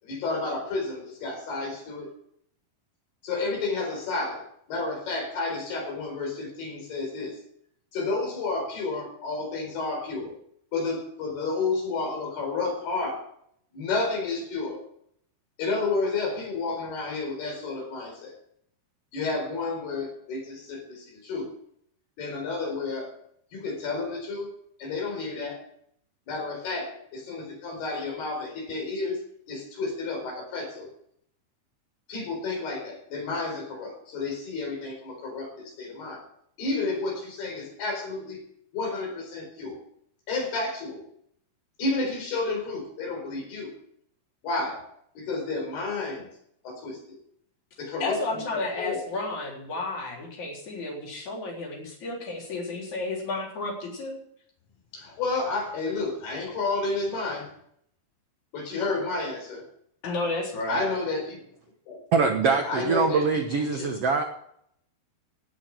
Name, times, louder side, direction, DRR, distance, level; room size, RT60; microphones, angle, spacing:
voice 1, 0.0-2.1 3.2-4.4 4.7-7.4 7.9-10.4 10.7-13.2 13.7-14.8 15.6-18.3 19.1-21.5 22.2-23.1 23.5-24.5 24.8-25.6 26.3-29.2 29.5-30.9 32.1-36.2 36.6-38.4 38.7-39.8 40.3-41.0 41.8-43.7 44.4-44.8 45.2-46.3 46.6-47.2 47.8-49.0 54.9-57.5 58.5-59.7 60.7-61.4 61.9-62.0 62.4-63.9, left 3 dB, 80° left, 1 dB, 6.4 m, -31 dB
voice 2, 48.0-54.2 60.0-60.8, left 2 dB, 50° left, -1 dB, 4.9 m, -32 dB
voice 3, 62.1-64.2, right 5 dB, 70° right, 4 dB, 1.4 m, -23 dB
17.0 x 7.1 x 7.6 m, 0.69 s
omnidirectional pair, 4.5 m